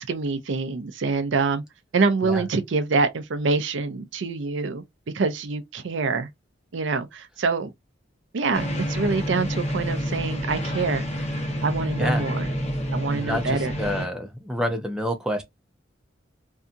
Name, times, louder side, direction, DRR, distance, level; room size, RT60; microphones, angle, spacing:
voice 1, 0.0-1.6 1.9-4.8 5.1-6.3 6.7-7.7 8.3-11.0 11.6-12.5 12.9-13.7, right 4 dB, 75° right, 0.5 m, -25 dB
sound 1, 8.5-14.1, equal, 35° left, 0.9 m, -28 dB
voice 2, 13.1-15.4, equal, 5° right, 0.7 m, -28 dB
2.7 x 2.4 x 2.4 m
head